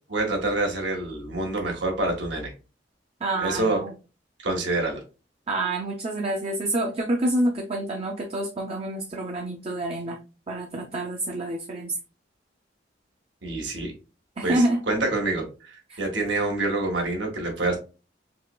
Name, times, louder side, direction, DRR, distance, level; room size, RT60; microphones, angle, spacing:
voice 1, 0.1-2.5 3.4-3.8 4.4-5.0 13.4-13.9 14.4-17.8, right 2 dB, 85° right, 1 dB, 1.5 m, -27 dB
voice 2, 3.2-3.9 5.5-10.2 10.5-11.9 14.4-14.8 15.9-16.0, right 1 dB, 35° right, 2 dB, 0.5 m, -27 dB
4.6 x 3.0 x 2.2 m, 0.32 s
head